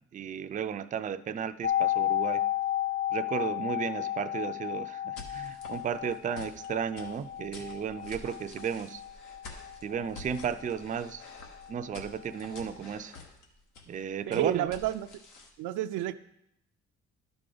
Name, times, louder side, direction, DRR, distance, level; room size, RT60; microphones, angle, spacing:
voice 1, 0.1-2.4 3.1-9.0 9.8-11.2 11.7-13.1 13.9-14.8, right 7 dB, 25° right, 10 dB, 0.4 m, -34 dB
sound 1, 1.6-11.4 11.6-11.7, left 13 dB, 50° left, 0.7 m, -33 dB
sound 2, 5.2-15.5, left 3 dB, 90° left, 1.2 m, -49 dB
voice 2, 14.3-15.1 15.6-16.1, right 12 dB, 85° right, 10 dB, 0.5 m, -30 dB
11.5 x 4.9 x 3.8 m, 0.80 s
cardioid pair, 90°, 30 cm